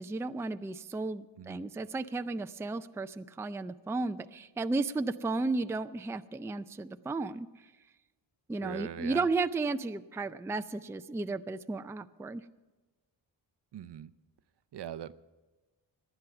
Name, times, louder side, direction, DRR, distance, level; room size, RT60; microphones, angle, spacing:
voice 1, 0.0-7.5 8.5-12.4, right 3 dB, 5° right, 10 dB, 0.4 m, -34 dB
voice 2, 8.6-9.3 13.7-14.1 14.7-15.1, right 11 dB, 65° right, 12 dB, 0.7 m, -41 dB
18.5 x 11.0 x 5.8 m, 1.2 s
wide cardioid pair, 115°, 44 cm